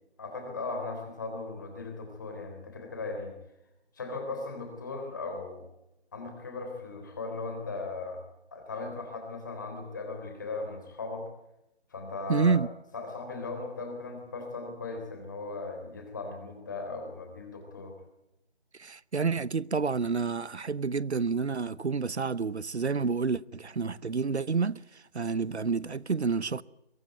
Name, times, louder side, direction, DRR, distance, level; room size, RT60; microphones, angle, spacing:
voice 1, 0.2-3.3 4.0-5.6 6.1-8.2 8.5-11.2 11.9-12.6 12.9-18.0, left 3 dB, 20° left, 3.5 m, -37 dB
voice 2, 12.3-12.7 18.8-26.6, right 5 dB, 85° right, 0.9 m, -29 dB
23.0 x 16.5 x 9.3 m
figure-of-eight pair, 170°, 33 cm